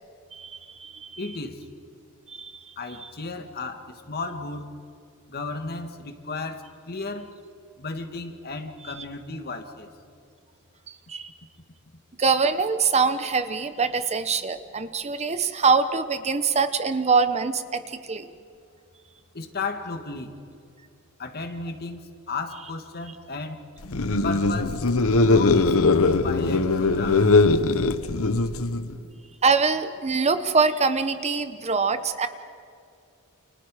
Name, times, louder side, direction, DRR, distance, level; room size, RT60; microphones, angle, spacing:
voice 1, 0.3-1.2 2.3-2.7 8.8-9.0 10.9-11.3 12.2-18.3 29.4-32.3, right 4 dB, 30° right, 10 dB, 0.9 m, -24 dB
voice 2, 1.2-1.6 2.8-4.7 5.3-7.3 7.8-9.9 19.3-20.3 21.2-23.6 24.2-24.8 25.2-25.8 26.2-27.3, left 3 dB, 45° left, 6 dB, 2.0 m, -34 dB
sound 1, 23.8-28.9, left 3 dB, 65° left, 1.0 m, -20 dB
29.5 x 29.5 x 5.0 m, 2.5 s
head